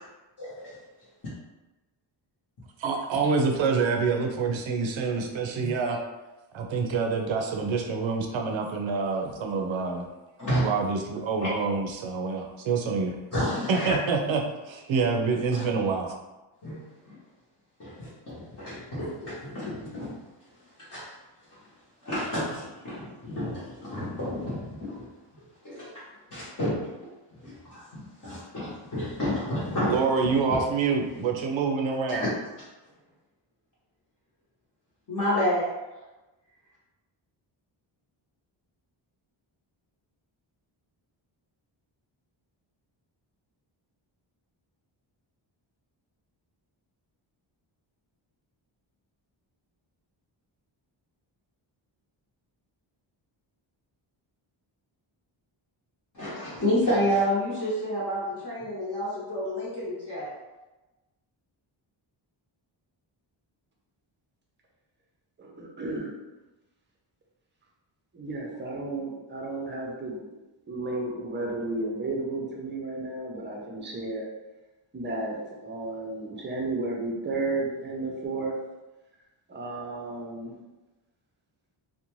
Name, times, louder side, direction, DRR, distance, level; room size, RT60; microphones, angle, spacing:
voice 1, 0.4-0.8 5.6-5.7 10.4-10.8 11.4-11.5 13.3-14.0 15.5-15.6 16.6-17.2 17.8-20.1 20.9-21.1 22.0-25.1 25.6-26.0 26.3-26.9 27.4-30.3 32.1-32.3 35.1-35.7 56.1-60.3, equal, 40° left, -10 dB, 0.8 m, -30 dB
voice 2, 2.8-6.0 6.5-10.0 10.6-13.1 13.7-14.4 14.7-16.1 29.9-32.3, right 4 dB, 70° right, 2 dB, 0.5 m, -26 dB
voice 3, 65.4-66.1 68.1-70.2 70.7-74.3 74.9-78.6 79.5-80.5, right 2 dB, 25° right, -1 dB, 0.5 m, -33 dB
2.5 x 2.1 x 2.9 m, 1.1 s
wide cardioid pair, 145°, 48 cm